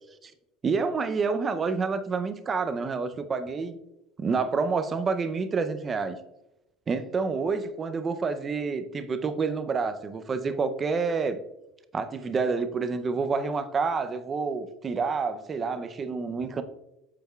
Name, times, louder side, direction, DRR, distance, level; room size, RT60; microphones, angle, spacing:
voice 1, 0.6-3.8 4.2-6.2 6.9-11.4 11.9-16.6, right 4 dB, 20° right, 10 dB, 0.5 m, -28 dB
7.9 x 6.8 x 2.3 m, 0.90 s
cardioid pair, 160°, 0 cm